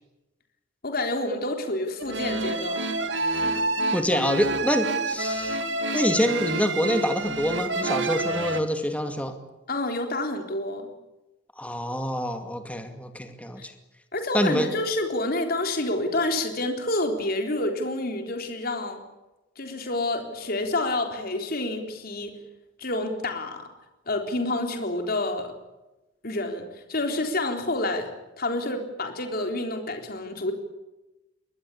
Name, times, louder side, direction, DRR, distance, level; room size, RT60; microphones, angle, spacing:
voice 1, 0.8-2.8 9.7-10.9 13.6-13.7 14.1-19.0 19.6-22.4 22.8-23.7 24.1-25.5 26.2-28.1 28.4-30.5, left 2 dB, 50° left, 4 dB, 3.9 m, -28 dB
sound 1, 2.0-8.6, right 2 dB, 70° right, 2.2 m, -28 dB
voice 2, 3.9-5.6 5.9-9.3 11.6-13.7 14.3-14.7, equal, 5° left, 6 dB, 2.3 m, -26 dB
24.0 x 19.5 x 8.5 m, 1.0 s
head